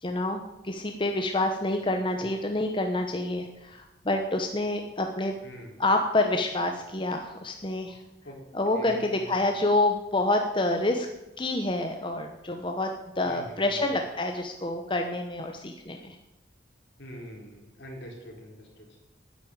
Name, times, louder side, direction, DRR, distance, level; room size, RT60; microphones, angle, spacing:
voice 1, 0.0-5.3 5.8-8.0 8.5-11.1 11.4-12.9 13.2-16.2, left 2 dB, 25° left, 4 dB, 0.9 m, -27 dB
voice 2, 5.4-5.7 8.2-8.4 8.8-9.3 13.2-13.9 17.0-19.0, equal, 70° left, 0 dB, 3.9 m, -44 dB
9.7 x 9.6 x 8.8 m, 0.94 s
head